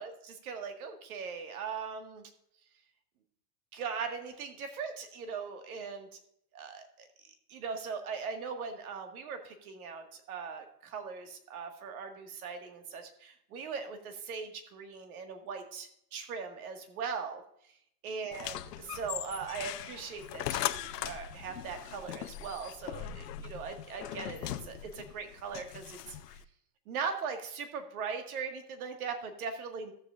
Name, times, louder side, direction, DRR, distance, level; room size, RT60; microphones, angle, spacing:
voice 1, 0.0-2.2 3.7-6.1 6.5-7.1 7.5-17.4 18.0-26.2 26.9-29.9, right 5 dB, 65° right, 5 dB, 1.8 m, -40 dB
sound 1, 18.3-26.4, left 12 dB, 80° left, 0.7 m, -40 dB
13.5 x 8.0 x 2.5 m, 0.70 s
hypercardioid pair, 150°, 48 cm